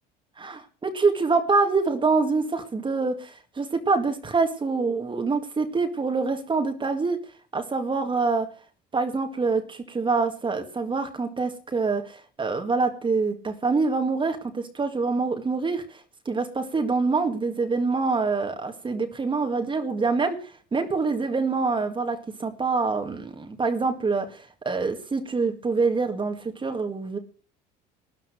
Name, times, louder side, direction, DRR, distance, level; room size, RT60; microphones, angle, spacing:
voice 1, 0.4-7.2 7.5-8.5 8.9-27.2, right 4 dB, 25° right, 5 dB, 2.0 m, -25 dB
13.0 x 9.8 x 6.4 m, 0.38 s
supercardioid pair, 95°, 20 cm